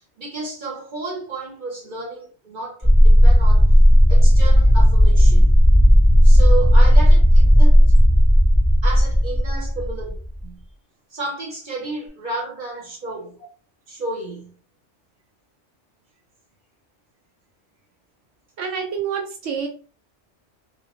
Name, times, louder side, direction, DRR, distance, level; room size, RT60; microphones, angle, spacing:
voice 1, 0.2-3.7 4.1-5.6 6.2-7.8 8.8-10.2 10.4-10.6 11.1-13.5 13.9-14.6, right 2 dB, 45° right, 0.8 m, -32 dB
sound 1, 2.8-10.4, equal, 15° right, 0.4 m, -13 dB
voice 2, 18.6-19.7, right 6 dB, 75° right, 1.0 m, -28 dB
2.2 x 2.1 x 2.9 m
omnidirectional pair, 1.3 m